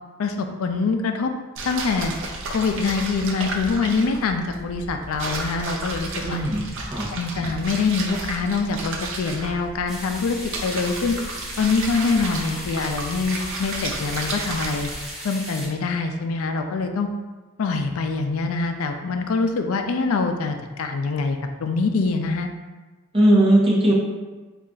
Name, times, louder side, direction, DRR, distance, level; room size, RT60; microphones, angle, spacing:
voice 1, 0.2-1.3 1.6-2.1 2.5-6.4 7.1-11.1 11.6-14.9 15.2-17.1 17.6-22.5, left 4 dB, 70° left, 5 dB, 0.4 m, -24 dB
sound 1, 1.5-15.1, right 2 dB, 60° right, 0.6 m, -33 dB
voice 2, 6.2-7.1 23.1-23.9, right 1 dB, 25° right, -5 dB, 0.9 m, -18 dB
sound 2, 9.9-15.7, equal, 5° right, 1.0 m, -37 dB
4.2 x 2.4 x 3.8 m, 1.2 s
head